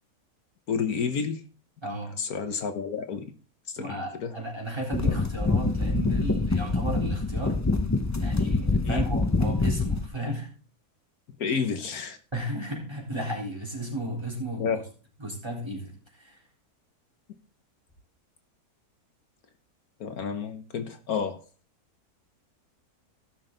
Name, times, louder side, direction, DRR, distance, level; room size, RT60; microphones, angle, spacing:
voice 1, 0.7-1.4 2.2-3.3 3.7-4.3 5.0-5.2 8.8-9.0 11.4-12.2 14.6-14.8 20.0-21.4, left 6 dB, 70° left, 8 dB, 1.5 m, -30 dB
voice 2, 1.8-2.1 3.8-7.6 8.2-10.5 11.4-11.5 12.3-14.8 15.2-16.4, right 1 dB, 15° right, -1 dB, 3.8 m, -34 dB
sound 1, 4.9-10.1, left 3 dB, 25° left, 0.3 m, -25 dB
16.5 x 6.2 x 3.9 m, 0.38 s
omnidirectional pair, 1.6 m